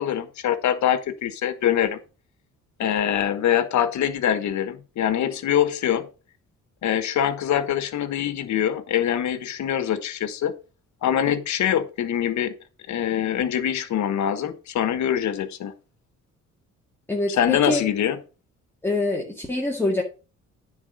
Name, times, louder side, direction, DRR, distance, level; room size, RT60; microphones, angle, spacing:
voice 1, 0.0-2.0 2.8-6.1 6.8-10.5 11.0-12.6 12.9-15.7 17.3-18.2, left 10 dB, 70° left, 1.3 m, -24 dB
voice 2, 17.1-17.8 18.8-20.0, left 2 dB, 10° left, 2.0 m, -25 dB
9.7 x 4.5 x 6.3 m
cardioid pair, 90°, 30 cm